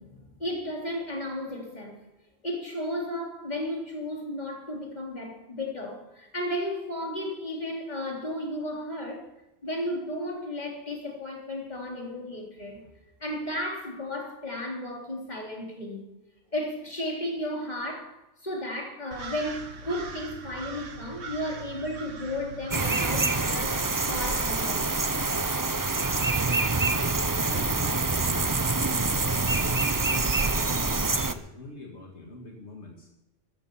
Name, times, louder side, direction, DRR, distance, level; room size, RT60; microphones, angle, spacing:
voice 1, 0.0-2.0 2.4-9.3 9.6-12.8 13.2-16.1 16.5-18.2 18.4-23.8 24.1-24.9, left 1 dB, 35° left, 3.8 m, -34 dB
sound 1, 19.1-26.8, right 4 dB, 85° right, 1.6 m, -42 dB
sound 2, 22.7-31.3, right 3 dB, 20° right, 0.6 m, -26 dB
voice 2, 27.5-33.1, left 2 dB, 70° left, 2.3 m, -45 dB
14.5 x 13.5 x 5.6 m
omnidirectional pair, 1.2 m